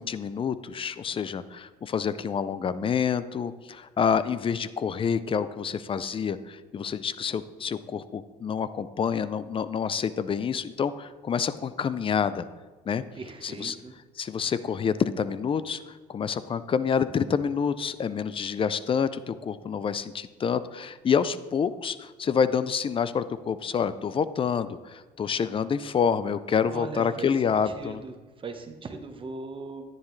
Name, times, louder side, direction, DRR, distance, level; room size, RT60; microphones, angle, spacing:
voice 1, 0.0-12.5 12.9-13.0 13.4-13.8 14.2-28.0, left 7 dB, 30° left, 14 dB, 0.5 m, -28 dB
voice 2, 13.1-13.9 26.7-27.3 27.7-29.8, right 4 dB, 30° right, 6 dB, 1.2 m, -39 dB
10.5 x 10.0 x 3.2 m, 1.4 s
cardioid pair, 110°, 17 cm